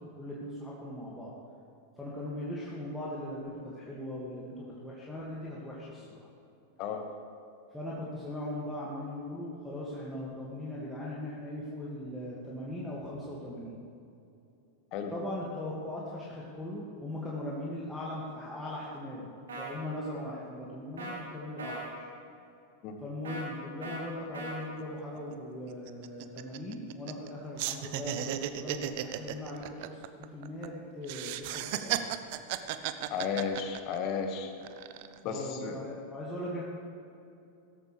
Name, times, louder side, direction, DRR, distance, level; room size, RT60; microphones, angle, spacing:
voice 1, 0.2-1.3 2.0-6.3 7.7-13.8 15.1-22.1 23.0-32.1 35.2-36.6, left 1 dB, 5° left, -7 dB, 2.2 m, -39 dB
sound 1, 19.5-19.7 21.0-21.2 21.6-21.9 23.2-23.4 23.8-24.0 24.3-24.6, right 2 dB, 65° right, 3.0 m, -39 dB
sound 2, 24.8-24.9 25.2-25.3 25.7-27.3 27.6-30.7 31.0-34.2 34.6-35.2, right 12 dB, 50° right, 0.6 m, -35 dB
voice 2, 33.1-34.5 35.2-35.8, left 6 dB, 40° left, 5 dB, 1.7 m, -33 dB
16.5 x 14.0 x 3.4 m, 2.7 s
figure-of-eight pair, 90°, 0 cm